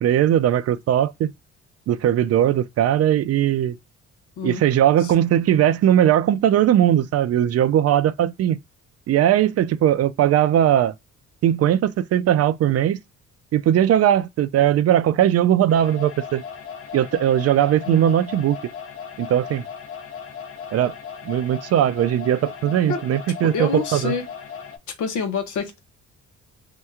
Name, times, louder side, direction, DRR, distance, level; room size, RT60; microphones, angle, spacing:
voice 1, 0.0-1.3 1.9-3.7 4.4-8.6 9.1-10.9 11.4-13.0 13.5-16.4 16.9-18.6 19.2-19.6 20.7-20.9 21.2-24.1, right 11 dB, 55° right, 0.4 m, -19 dB
sound 1, 15.7-24.8, left 7 dB, 45° left, 0.8 m, -37 dB
voice 2, 23.4-24.3 25.0-25.8, left 5 dB, 75° left, 0.8 m, -27 dB
2.8 x 2.2 x 3.4 m
cardioid pair, 90°, 30 cm